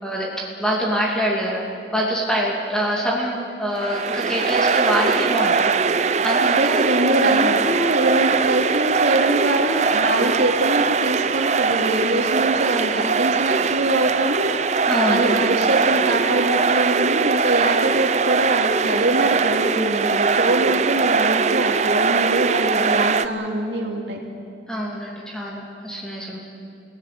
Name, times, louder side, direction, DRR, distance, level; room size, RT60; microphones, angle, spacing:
voice 1, 0.0-1.6 1.9-5.7 6.0-6.8 7.3-7.6 14.9-15.3 24.7-26.4, equal, 5° left, -4 dB, 2.7 m, -25 dB
sound 1, 3.7-23.3, right 5 dB, 40° right, 0.6 m, -21 dB
voice 2, 6.4-24.2, right 1 dB, 75° right, 0 dB, 2.8 m, -23 dB
29.5 x 17.5 x 6.9 m, 2.6 s
head